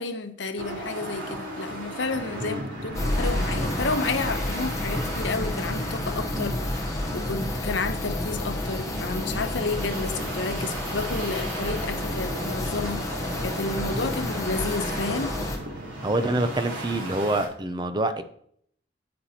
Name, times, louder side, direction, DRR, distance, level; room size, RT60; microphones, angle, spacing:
voice 1, 0.0-15.4, left 3 dB, 75° left, 0.8 m, -31 dB
sound 1, 0.6-17.5, right 1 dB, 85° right, 3.4 m, -36 dB
sound 2, 2.9-15.6, left 1 dB, 15° left, 0.9 m, -30 dB
voice 2, 16.0-18.2, right 2 dB, 25° right, 0.5 m, -26 dB
9.9 x 8.6 x 2.9 m
head